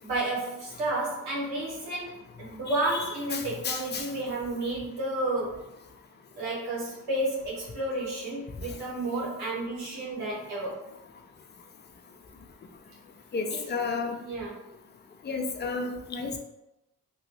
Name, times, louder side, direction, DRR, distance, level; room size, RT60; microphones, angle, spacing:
voice 1, 0.0-5.6 6.3-10.8 13.5-13.7 14.2-14.6, right 2 dB, 90° right, -6 dB, 1.2 m, -31 dB
voice 2, 3.3-4.0 13.3-14.1 15.3-16.4, left 4 dB, 30° left, 3 dB, 0.6 m, -32 dB
3.0 x 2.7 x 3.0 m, 0.89 s
supercardioid pair, 50°, 36 cm